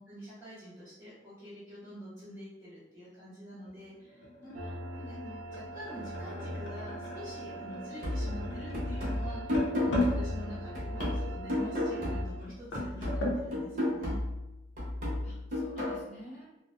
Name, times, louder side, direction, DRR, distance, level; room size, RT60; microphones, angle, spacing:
voice 1, 0.0-4.5 5.1-14.2, equal, 15° right, -13 dB, 0.6 m, -46 dB
sound 1, 3.7-13.4, left 1 dB, 85° left, 0.6 m, -38 dB
voice 2, 4.5-5.4 15.2-16.5, equal, 40° left, -4 dB, 0.6 m, -49 dB
sound 2, 4.5-12.2, right 1 dB, 75° right, 0.4 m, -42 dB
sound 3, 8.0-12.5 12.7-16.0, left 1 dB, 45° right, 0.8 m, -33 dB
2.5 x 2.0 x 2.4 m, 0.95 s
head